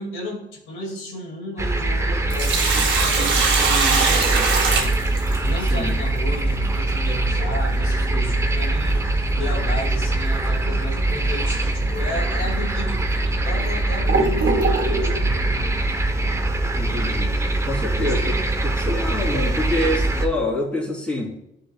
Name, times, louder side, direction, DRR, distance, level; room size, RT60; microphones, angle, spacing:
voice 1, 0.0-5.0 5.4-13.1 13.4-15.8 17.9-18.3, left 1 dB, 75° left, -1 dB, 2.3 m, -33 dB
sound 1, 1.6-20.3, right 2 dB, 15° right, 0.8 m, -22 dB
Sink (filling or washing), 2.1-5.7 8.1-8.2 10.1-10.3 10.8-10.9 11.7-11.8 12.5-12.6 13.3-15.2, right 4 dB, 75° right, 1.9 m, -22 dB
voice 2, 16.8-17.3 17.7-21.3, left 1 dB, 5° left, -3 dB, 2.9 m, -26 dB
10.5 x 5.4 x 2.3 m, 0.79 s
cardioid pair, 90°, 20 cm